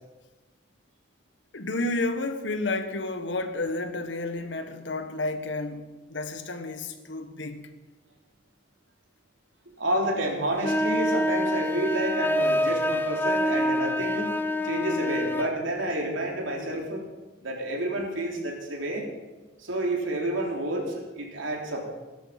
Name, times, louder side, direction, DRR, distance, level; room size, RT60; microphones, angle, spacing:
voice 1, 1.5-7.7, left 2 dB, 70° left, 1.4 m, -31 dB
voice 2, 9.8-14.3 14.6-17.0 17.4-19.1 19.6-21.9, right 1 dB, 90° right, 3.5 m, -29 dB
sound 1, 10.6-15.5, left 1 dB, 10° left, 0.6 m, -26 dB
17.0 x 12.5 x 5.7 m
head